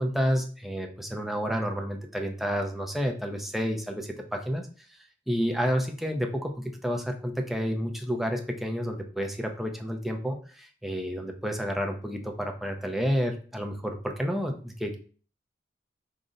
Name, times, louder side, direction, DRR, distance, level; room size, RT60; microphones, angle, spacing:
voice 1, 0.0-4.6 5.3-14.9, equal, ahead, 2 dB, 0.4 m, -30 dB
3.8 x 2.0 x 3.6 m, 0.42 s
head